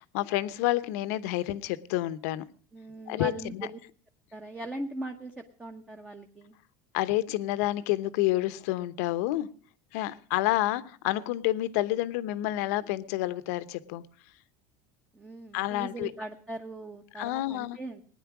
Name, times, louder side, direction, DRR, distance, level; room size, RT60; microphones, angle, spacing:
voice 1, 0.0-2.4 3.1-3.7 6.9-9.5 9.9-14.0 15.5-16.1 17.1-17.8, left 16 dB, 70° left, 15 dB, 1.0 m, -29 dB
voice 2, 2.7-3.8 4.3-6.6 15.1-18.0, right 2 dB, 10° right, 4 dB, 1.0 m, -40 dB
18.5 x 10.0 x 6.0 m, 0.43 s
cardioid pair, 160°, 9 cm